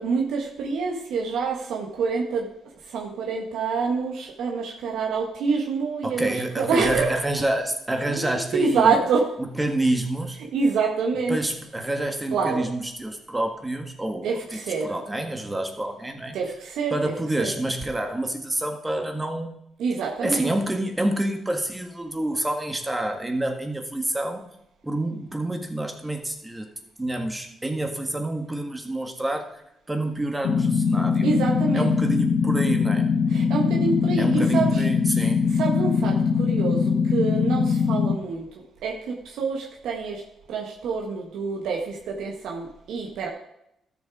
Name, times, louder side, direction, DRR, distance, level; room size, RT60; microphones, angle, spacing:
voice 1, 0.0-2.5 2.9-7.2 8.1-9.3 10.5-11.4 12.3-12.7 14.2-15.0 16.3-17.1 17.4-17.5 19.8-20.5 31.2-31.9 33.3-34.8 35.2-35.3 35.6-38.5 38.8-40.2 40.5-43.3, right 5 dB, 80° right, 0 dB, 1.5 m, -26 dB
voice 2, 6.0-9.0 9.4-10.4 11.3-14.4 14.8-16.4 16.9-19.5 20.2-24.5 24.8-26.7 27.0-29.6 29.9-31.3 31.7-33.1 34.2-35.5, right 1 dB, 15° right, 4 dB, 1.7 m, -28 dB
sound 1, 30.4-38.1, left 5 dB, 70° left, 1.0 m, -22 dB
12.5 x 7.0 x 4.9 m, 0.78 s
cardioid pair, 90°, 0 cm